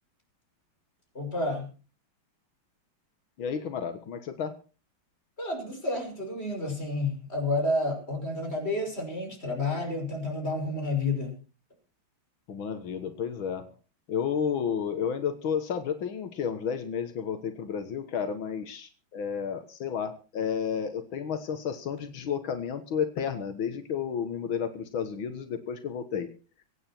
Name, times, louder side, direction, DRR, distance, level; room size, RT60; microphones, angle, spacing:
voice 1, 1.1-1.7 5.4-11.3, left 2 dB, 30° left, 2 dB, 5.9 m, -30 dB
voice 2, 3.4-4.5 12.5-13.6 14.1-26.3, left 7 dB, 90° left, 8 dB, 2.2 m, -31 dB
24.0 x 9.2 x 4.5 m, 0.36 s
omnidirectional pair, 2.2 m